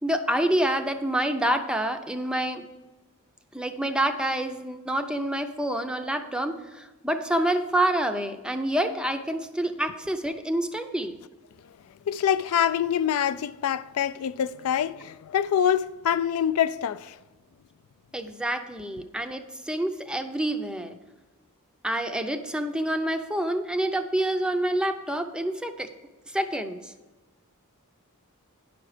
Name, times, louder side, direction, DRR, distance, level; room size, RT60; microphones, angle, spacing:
voice 1, 0.0-2.6 3.5-11.2 18.1-20.9 21.8-25.9 26.3-26.9, right 1 dB, 5° right, 0.5 m, -27 dB
voice 2, 12.1-17.2, left 9 dB, 70° left, 0.3 m, -25 dB
10.5 x 6.0 x 4.9 m
head